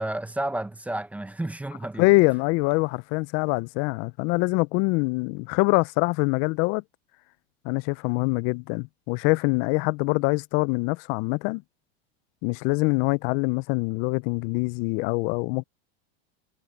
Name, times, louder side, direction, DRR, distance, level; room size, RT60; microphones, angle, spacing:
voice 1, 0.0-2.1, right 1 dB, 5° right, 0.9 m, -31 dB
voice 2, 2.0-6.8 7.6-11.6 12.4-15.6, left 27 dB, 45° left, 0.4 m, -24 dB
supercardioid pair, 135°, 30 cm